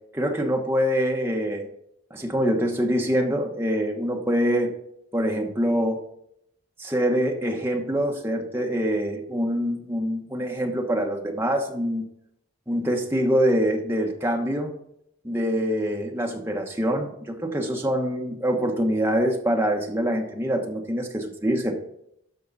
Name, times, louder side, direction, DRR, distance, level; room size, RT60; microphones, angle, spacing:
voice 1, 0.1-1.7 2.1-4.7 5.1-6.0 6.8-12.0 12.7-14.7 15.2-21.7, equal, 10° right, 1 dB, 1.1 m, -25 dB
13.0 x 4.7 x 4.0 m, 0.74 s
head